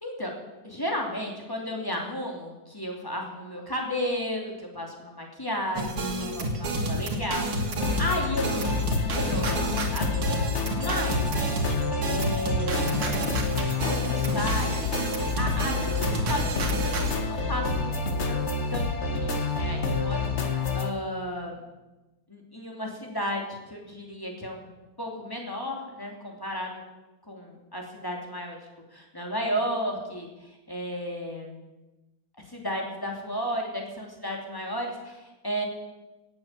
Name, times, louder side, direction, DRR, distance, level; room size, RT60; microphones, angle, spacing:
voice 1, 0.0-0.3 0.6-5.9 6.2-9.6 9.9-10.2 10.7-11.2 12.1-13.2 13.7-14.9 15.4-18.4 18.7-21.6 22.3-26.7 27.3-28.6 28.9-31.6 32.5-35.6, equal, 10° left, 0 dB, 2.7 m, -33 dB
sound 1, 5.7-17.2, right 2 dB, 85° right, 2.8 m, -30 dB
sound 2, 7.8-20.9, left 4 dB, 40° left, 1.3 m, -28 dB
17.5 x 8.6 x 7.5 m, 1.1 s
omnidirectional pair, 2.3 m